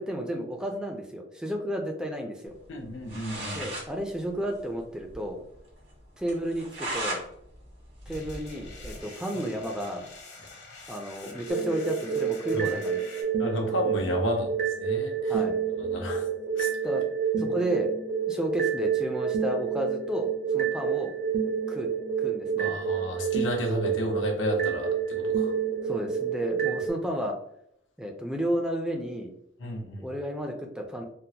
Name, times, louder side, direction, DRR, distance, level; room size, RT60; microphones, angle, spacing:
voice 1, 0.0-2.5 3.5-5.4 6.2-7.2 8.1-10.1 10.9-13.0 15.3-15.6 16.8-17.0 17.3-17.9 18.3-21.1 21.7-21.9 22.2-22.8 25.8-27.4 28.0-29.3 30.0-31.0, equal, 5° right, 2 dB, 0.3 m, -32 dB
voice 2, 2.7-3.6 9.3-9.4 12.5-12.7 13.4-15.4 15.8-16.2 16.6-16.7 22.6-25.5 29.6-30.1, equal, 85° left, 0 dB, 0.8 m, -32 dB
sound 1, 2.8-2.9 3.1-3.9 4.2-4.3 4.6-4.7 5.1-5.2 5.6-5.7 6.3-7.2 7.6-9.0, right 1 dB, 75° right, 1.3 m, -35 dB
sound 2, 8.1-13.2, left 3 dB, 65° left, 1.1 m, -47 dB
sound 3, 11.5-26.9, right 7 dB, 55° right, 0.6 m, -29 dB
3.7 x 2.0 x 2.7 m, 0.72 s
head